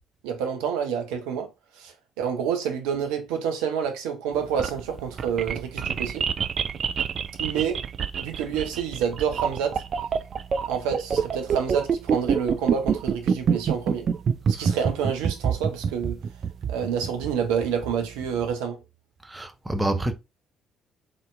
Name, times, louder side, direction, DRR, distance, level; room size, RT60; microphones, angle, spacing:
voice 1, 0.2-1.5 1.8-6.3 7.4-7.8 8.2-9.8 10.7-14.1 14.5-16.2 16.7-18.8, right 7 dB, 70° right, 0.9 m, -28 dB
sound 1, 4.3-18.5, right 6 dB, 50° right, 0.4 m, -26 dB
voice 2, 19.3-20.1, right 1 dB, 15° right, 0.9 m, -27 dB
3.9 x 3.8 x 2.4 m
figure-of-eight pair, 45°, 0 cm